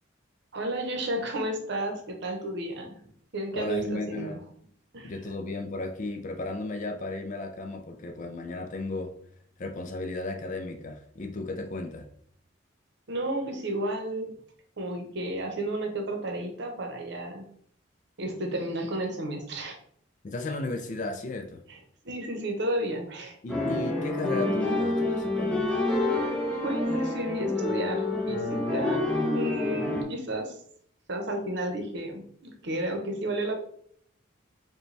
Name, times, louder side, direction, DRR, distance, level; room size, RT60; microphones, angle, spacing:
voice 1, 0.5-3.0 3.3-4.4 4.9-5.2 13.1-14.3 14.8-17.5 18.2-19.7 21.7-21.8 22.0-23.4 26.6-30.6 31.1-33.6, right 1 dB, 60° right, 3 dB, 0.8 m, -32 dB
voice 2, 3.5-4.4 5.0-9.1 9.6-12.1 20.2-21.6 23.4-25.7, left 2 dB, 40° left, 5 dB, 0.3 m, -34 dB
sound 1, 23.5-30.0, left 2 dB, 5° left, 0.7 m, -28 dB
4.9 x 2.3 x 3.2 m, 0.64 s
head